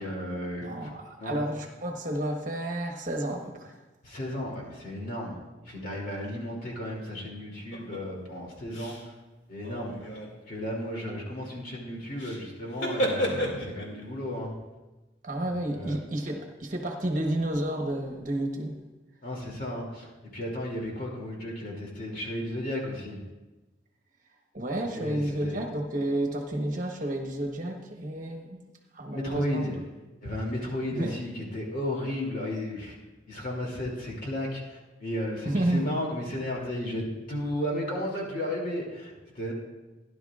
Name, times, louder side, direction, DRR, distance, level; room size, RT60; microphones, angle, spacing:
voice 1, 0.0-0.9 1.2-1.5 4.0-9.1 9.5-10.1 10.5-14.5 15.4-16.0 19.2-23.2 24.9-25.6 29.1-29.8 30.2-33.0 33.3-39.5, left 1 dB, 45° left, -2 dB, 2.8 m, -34 dB
voice 2, 0.6-3.8 15.2-18.8 24.5-28.6 28.9-29.7 31.0-31.2 35.4-35.8, right 1 dB, 40° right, 2 dB, 1.2 m, -31 dB
sound 1, 7.7-8.0 8.7-9.1 9.5-10.3 12.2-12.4 12.7-14.0, equal, 70° left, 2.4 m, -31 dB
17.0 x 11.0 x 2.5 m, 1.1 s
head